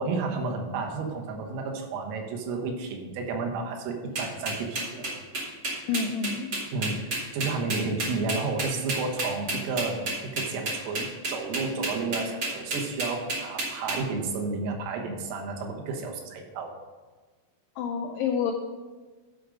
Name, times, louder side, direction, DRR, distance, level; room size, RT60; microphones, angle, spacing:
voice 1, 0.0-5.1 6.7-16.7, right 3 dB, 90° right, 2 dB, 3.9 m, -31 dB
sound 1, 4.1-14.0, right 2 dB, 45° right, 1.3 m, -30 dB
voice 2, 5.9-6.5 17.8-18.5, left 6 dB, 85° left, 2 dB, 2.3 m, -28 dB
12.5 x 5.1 x 5.3 m, 1.3 s
omnidirectional pair, 5.7 m